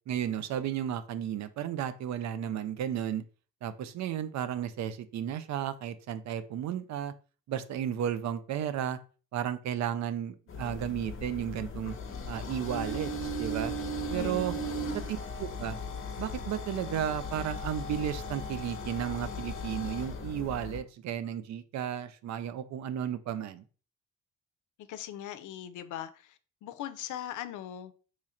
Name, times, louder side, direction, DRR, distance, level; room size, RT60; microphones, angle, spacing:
voice 1, 0.1-3.2 3.6-7.1 7.5-9.0 9.3-12.0 12.3-13.1 13.4-13.7 14.1-14.5 15.1-15.8 16.2-23.6, right 10 dB, 65° right, 0.5 m, -33 dB
sound 1, 10.5-20.8, left 1 dB, 45° left, 0.8 m, -37 dB
voice 2, 14.1-15.1 24.9-27.9, left 11 dB, 80° left, 0.5 m, -40 dB
3.1 x 2.4 x 4.1 m
cardioid pair, 90°, 30 cm